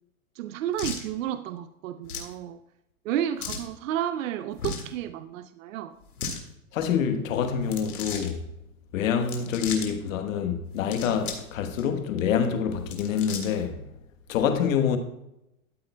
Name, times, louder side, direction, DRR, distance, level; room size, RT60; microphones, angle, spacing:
voice 1, 0.4-2.6 3.1-5.9, right 11 dB, 65° right, 0.6 m, -31 dB
sound 1, 0.8-1.1 2.0-2.3 3.4-3.7 4.5-4.9 6.0-6.4 7.6-8.3 9.2-9.9 10.7-11.5 11.8-11.9 12.7-13.7, left 5 dB, 85° left, 2.0 m, -36 dB
voice 2, 6.7-8.4 8.9-13.8 14.3-15.0, left 7 dB, 60° left, 1.3 m, -26 dB
13.0 x 8.7 x 2.2 m
hypercardioid pair, 135°, 44 cm